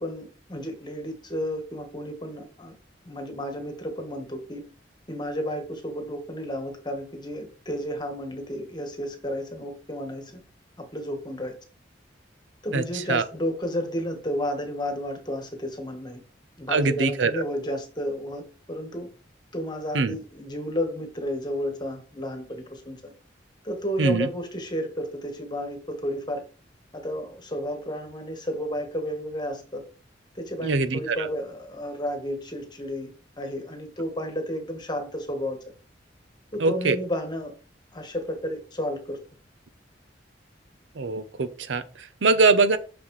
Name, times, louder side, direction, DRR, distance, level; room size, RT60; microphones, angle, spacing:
voice 1, 0.0-2.7 3.0-4.6 5.1-10.4 10.8-11.5 12.6-16.2 16.6-19.1 19.5-23.1 23.6-26.4 26.9-29.8 30.3-35.6 36.5-37.5 37.9-39.2, equal, 25° left, 1.3 m, -32 dB
voice 2, 12.7-13.2 16.7-17.4 19.9-20.2 24.0-24.3 30.6-31.3 36.6-37.0 41.0-42.8, right 3 dB, 85° right, 0.7 m, -23 dB
6.0 x 5.9 x 3.1 m
head